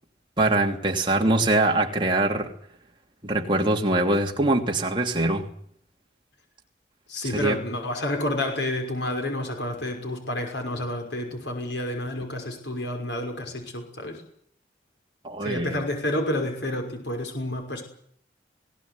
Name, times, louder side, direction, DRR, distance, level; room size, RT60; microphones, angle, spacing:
voice 1, 0.4-2.5 3.2-5.5 7.3-7.6 15.2-15.8, right 2 dB, 30° right, 3.0 m, -23 dB
voice 2, 7.1-14.2 15.4-17.8, left 1 dB, 85° left, 5.9 m, -29 dB
21.0 x 18.5 x 9.8 m
head